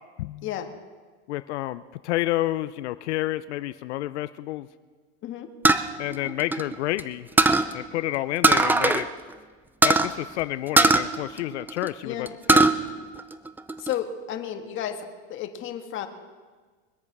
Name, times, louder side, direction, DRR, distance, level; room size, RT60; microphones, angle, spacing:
voice 1, 1.3-4.7 6.0-7.3 7.7-9.1 9.8-12.7, left 16 dB, 85° left, 14 dB, 0.6 m, -29 dB
sound 1, 5.6-7.0 7.4-7.7 8.4-9.1 9.3-9.4 9.8-10.1 10.8-11.9 12.3-12.8 13.2-13.9, right 3 dB, 5° right, 0.5 m, -19 dB
voice 2, 13.8-16.1, left 10 dB, 35° left, 6 dB, 1.6 m, -32 dB
23.0 x 8.5 x 6.1 m, 1.4 s
supercardioid pair, 135°, 33 cm